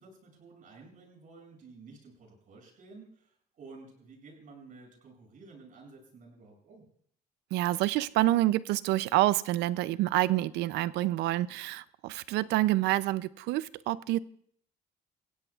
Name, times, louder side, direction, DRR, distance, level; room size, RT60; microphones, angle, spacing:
voice 1, 0.0-6.8, right 3 dB, 50° right, 1 dB, 7.0 m, -52 dB
voice 2, 7.5-14.2, right 16 dB, 85° right, 18 dB, 0.5 m, -27 dB
28.0 x 16.0 x 2.4 m, 0.65 s
cardioid pair, 110°, 17 cm